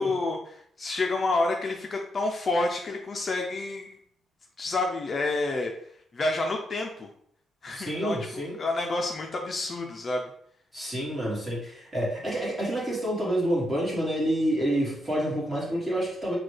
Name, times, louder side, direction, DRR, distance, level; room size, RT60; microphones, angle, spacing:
voice 1, 0.0-4.0 4.6-5.7 6.1-7.1 7.6-10.3, left 2 dB, 30° left, 2 dB, 0.4 m, -29 dB
voice 2, 7.7-8.5 10.7-16.4, right 1 dB, 15° right, -4 dB, 1.5 m, -28 dB
6.0 x 2.2 x 3.2 m, 0.66 s
cardioid pair, 155°, 0 cm